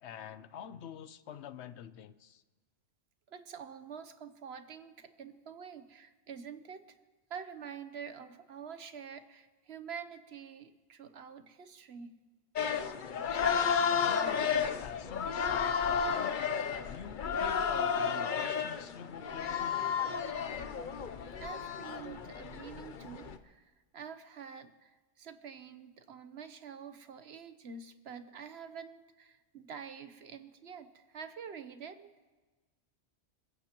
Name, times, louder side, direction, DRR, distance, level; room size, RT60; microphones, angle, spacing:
voice 1, 0.0-2.4 13.9-19.8, left 9 dB, 75° left, 14 dB, 0.9 m, -46 dB
voice 2, 3.3-6.9 7.3-12.1 21.3-32.1, right 7 dB, 65° right, 10 dB, 1.1 m, -47 dB
sound 1, 12.6-23.4, left 6 dB, 50° left, 0.8 m, -32 dB
26.0 x 15.5 x 3.0 m, 1.2 s
omnidirectional pair, 1.2 m